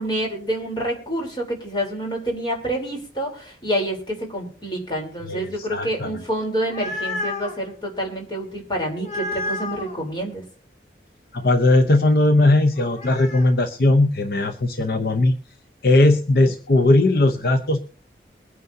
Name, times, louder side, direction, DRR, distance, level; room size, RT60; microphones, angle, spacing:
voice 1, 0.0-10.4, right 1 dB, 25° left, 0 dB, 3.6 m, -27 dB
voice 2, 5.3-6.2 11.3-15.3 15.8-17.8, left 2 dB, 60° left, 7 dB, 0.8 m, -18 dB
sound 1, 6.4-7.6 9.0-9.9 12.8-13.5, left 2 dB, 40° left, 2.4 m, -30 dB
22.5 x 9.4 x 2.7 m, 0.42 s
head